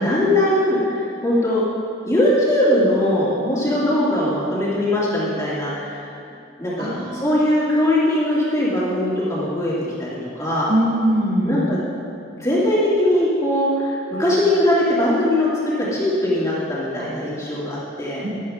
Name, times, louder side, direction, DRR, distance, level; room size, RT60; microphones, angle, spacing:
voice 1, 0.0-1.6 2.0-6.1 6.6-9.7 10.0-10.7 11.4-11.8 12.3-18.2, left 1 dB, 15° left, -8 dB, 2.7 m, -20 dB
voice 2, 6.8-7.4 10.7-11.6 17.0-17.1 18.2-18.3, right 1 dB, 50° right, -4 dB, 1.8 m, -22 dB
13.0 x 11.5 x 3.7 m, 2.6 s
head